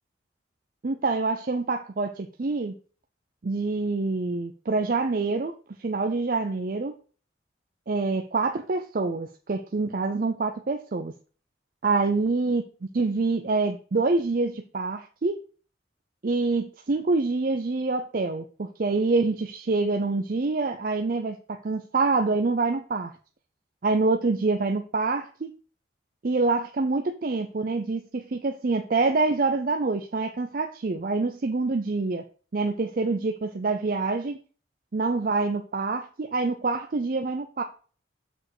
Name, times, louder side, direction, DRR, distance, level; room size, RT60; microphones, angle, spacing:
voice 1, 0.8-2.8 3.4-6.9 7.9-11.1 11.8-12.7 12.9-15.4 16.2-23.1 23.8-25.5 26.2-32.2 32.5-34.4 34.9-37.6, right 3 dB, 50° right, 5 dB, 0.5 m, -26 dB
6.4 x 4.9 x 4.8 m, 0.39 s
head